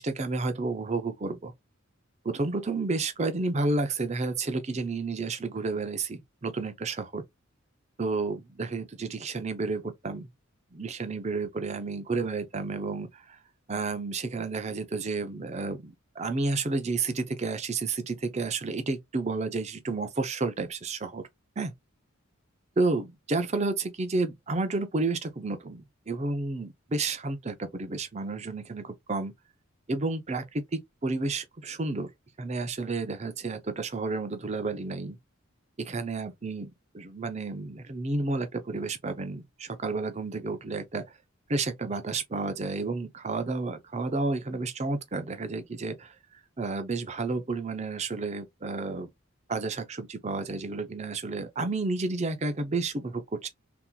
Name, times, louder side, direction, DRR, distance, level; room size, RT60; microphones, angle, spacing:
voice 1, 0.0-1.5 2.2-7.2 8.0-10.3 10.7-13.4 13.7-21.2 21.6-21.7 22.8-29.3 29.9-32.1 32.4-35.2 35.8-41.0 41.5-46.1 46.6-49.1 49.5-53.5, right 3 dB, 30° right, 0.5 m, -31 dB
3.7 x 2.9 x 2.3 m
head